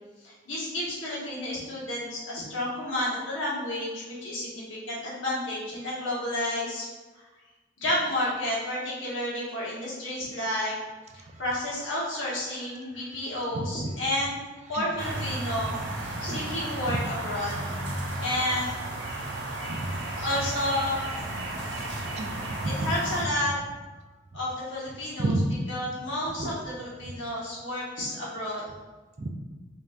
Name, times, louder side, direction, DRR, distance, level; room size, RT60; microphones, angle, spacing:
voice 1, 0.2-6.9 7.8-10.8 11.1-14.4 14.7-17.5 18.2-18.7 20.2-21.0 22.8-23.6 24.3-25.3 25.7-28.7, left 1 dB, 90° left, -6 dB, 1.3 m, -31 dB
voice 2, 13.5-13.9 14.7-14.9 16.1-16.3 16.9-17.0 19.8-20.0 22.2-22.9 23.2-23.3 25.2-25.5 26.4-26.5 29.2-29.3, right 2 dB, 35° right, 4 dB, 0.3 m, -30 dB
sound 1, 15.0-23.2, right 1 dB, 70° right, 0.8 m, -34 dB
5.3 x 2.7 x 2.4 m, 1.3 s
head